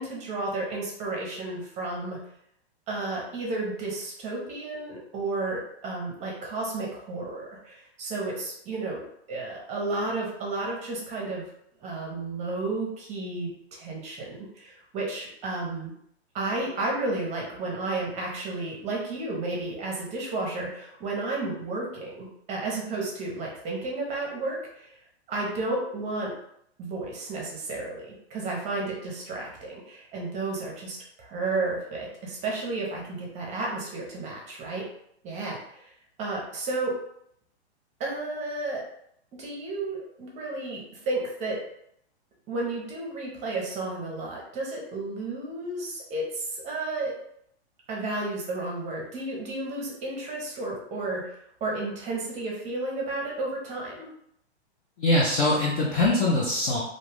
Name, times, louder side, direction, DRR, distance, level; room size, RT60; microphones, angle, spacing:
voice 1, 0.0-2.2 2.9-9.0 9.3-11.5 11.8-15.9 16.3-25.0 25.3-26.3 26.8-34.8 35.2-35.9 36.2-36.9 38.0-38.8 39.4-41.6 42.5-47.1 47.9-54.1, right 2 dB, 20° right, -2 dB, 0.7 m, -32 dB
voice 2, 55.0-56.8, left 2 dB, 25° left, -5 dB, 0.4 m, -23 dB
2.6 x 2.3 x 3.3 m, 0.72 s
hypercardioid pair, 135°, 33 cm